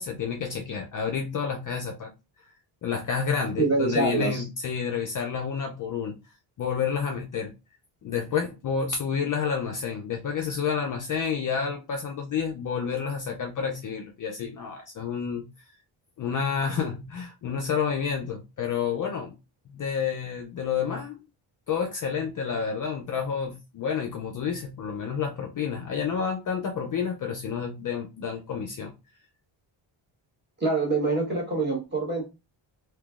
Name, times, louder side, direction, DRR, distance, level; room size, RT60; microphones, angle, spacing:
voice 1, 0.0-2.1 2.8-6.2 6.6-7.5 8.0-15.5 16.2-19.3 19.7-21.2 21.7-28.9, left 6 dB, 45° left, 0.4 m, -29 dB
voice 2, 3.6-4.4 30.6-32.3, right 3 dB, 20° right, 1.1 m, -25 dB
3.6 x 2.7 x 2.3 m
wide cardioid pair, 165°, 49 cm